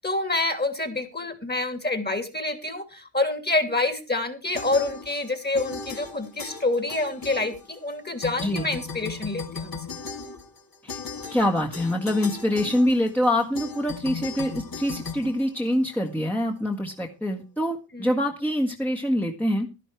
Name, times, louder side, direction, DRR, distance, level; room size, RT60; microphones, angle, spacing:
voice 1, 0.0-9.8 17.9-18.1, left 2 dB, 20° left, 10 dB, 2.7 m, -27 dB
sound 1, 4.5-5.3 5.5-7.9 8.2-16.1, left 5 dB, 45° left, 2.4 m, -37 dB
voice 2, 11.3-19.7, left 1 dB, 5° left, 0 dB, 1.7 m, -25 dB
11.5 x 11.0 x 4.6 m, 0.30 s
cardioid pair, 60°, 47 cm